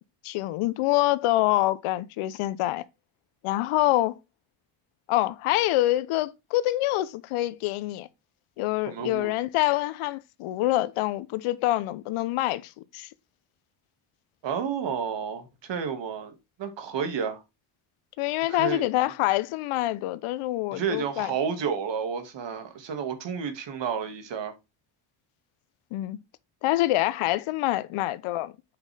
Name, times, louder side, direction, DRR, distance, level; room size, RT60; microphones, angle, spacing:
voice 1, 0.2-2.8 3.4-4.2 5.1-8.1 8.6-13.1 18.2-21.3 25.9-26.2 26.6-28.5, left 16 dB, 85° left, 0.9 m, -26 dB
voice 2, 8.9-9.3 14.4-17.4 18.5-18.9 20.7-24.5, right 6 dB, 60° right, 2.1 m, -31 dB
7.9 x 5.9 x 3.4 m
cardioid pair, 100°, 49 cm